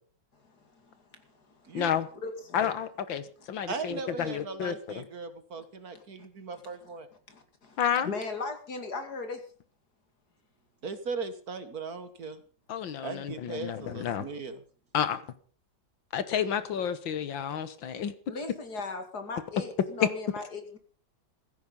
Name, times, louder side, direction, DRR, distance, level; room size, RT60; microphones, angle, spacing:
voice 1, 0.3-1.8 2.2-2.7 5.9-6.0 6.8-7.0 7.3-9.5 18.3-20.8, left 3 dB, 55° left, 7 dB, 2.9 m, -39 dB
voice 2, 1.7-2.1 2.5-5.0 7.8-8.1 12.7-14.3 14.9-15.2 16.1-18.1 20.0-20.1, left 8 dB, 80° left, 13 dB, 1.9 m, -30 dB
voice 3, 3.7-7.1 10.8-12.4 13.0-14.6, right 4 dB, 50° right, 11 dB, 1.8 m, -38 dB
15.5 x 15.0 x 5.4 m, 0.42 s
omnidirectional pair, 2.1 m